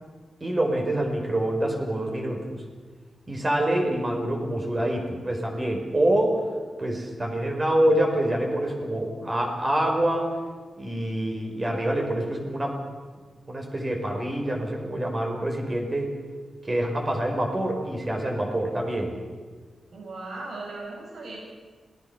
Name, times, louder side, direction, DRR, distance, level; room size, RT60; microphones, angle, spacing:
voice 1, 0.4-2.6 3.3-6.4 6.8-10.3 10.8-12.8 13.5-16.1 16.7-19.1, right 1 dB, 30° right, 1 dB, 5.4 m, -26 dB
voice 2, 19.9-21.4, right 2 dB, 70° right, -1 dB, 7.3 m, -37 dB
27.0 x 19.5 x 7.3 m, 1.5 s
wide cardioid pair, 120°, 0 cm